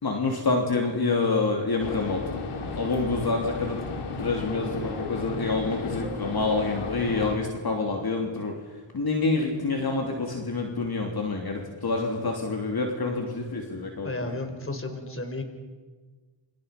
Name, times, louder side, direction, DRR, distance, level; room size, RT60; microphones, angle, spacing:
voice 1, 0.0-2.4 2.6-3.8 4.2-8.5 8.9-14.3, left 3 dB, 45° left, 1 dB, 3.4 m, -27 dB
sound 1, 1.8-7.4, left 3 dB, 80° left, 3.3 m, -34 dB
voice 2, 14.0-15.4, left 2 dB, 25° left, 6 dB, 4.3 m, -33 dB
28.0 x 25.5 x 5.4 m, 1.4 s
cardioid pair, 80°, 50 cm